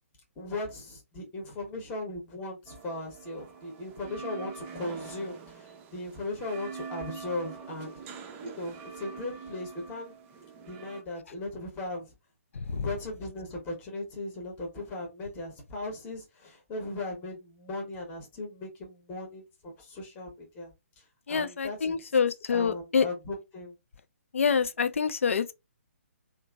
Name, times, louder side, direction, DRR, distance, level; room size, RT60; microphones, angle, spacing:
voice 1, 0.4-7.9 8.4-10.1 10.6-12.1 12.7-22.1 22.5-23.8, left 2 dB, 20° left, 0.9 m, -38 dB
sound 1, 2.7-11.0, right 5 dB, 20° right, 0.4 m, -44 dB
voice 2, 12.6-12.9 21.3-23.1 24.3-25.5, left 6 dB, 65° left, 0.4 m, -26 dB
2.8 x 2.5 x 2.3 m
figure-of-eight pair, 135°, 8 cm